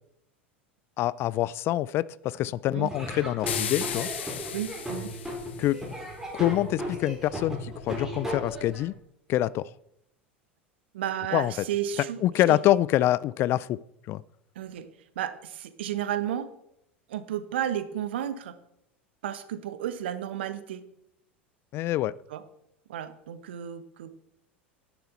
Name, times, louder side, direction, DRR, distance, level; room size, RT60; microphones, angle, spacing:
voice 1, 1.0-4.1 5.6-5.8 6.3-8.9 9.3-9.7 11.3-11.5 12.2-13.8 14.1-14.2 21.7-22.1, left 14 dB, 40° left, 0.3 m, -25 dB
Laughter / Drum, 2.9-8.8, equal, 10° right, 4.6 m, -36 dB
sound 1, 3.5-5.9, left 9 dB, 70° left, 1.1 m, -35 dB
voice 2, 4.5-5.1 10.9-12.6 14.5-14.9 15.2-16.5 17.1-18.5 19.2-20.8 22.3-22.4 22.9-24.2, right 10 dB, 65° right, 1.0 m, -32 dB
10.5 x 10.5 x 4.1 m
figure-of-eight pair, 80°, 6 cm